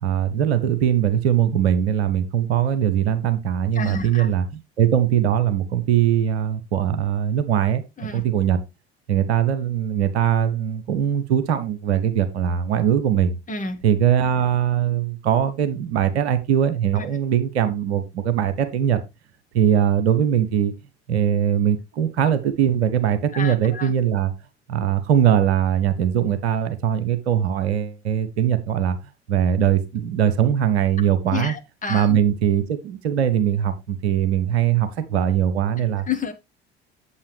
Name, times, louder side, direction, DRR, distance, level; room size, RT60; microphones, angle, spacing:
voice 1, 0.0-7.8 8.1-8.6 9.1-13.3 13.8-19.0 19.5-20.7 21.1-24.3 24.7-29.0 29.3-31.5 31.9-36.1, right 9 dB, 70° right, 1.0 m, -21 dB
voice 2, 3.8-4.3 8.0-8.2 13.5-13.8 17.0-17.1 23.3-23.9 31.3-32.1 36.1-36.3, left 5 dB, 25° left, 1.9 m, -29 dB
8.5 x 7.9 x 3.2 m
figure-of-eight pair, 60°, 34 cm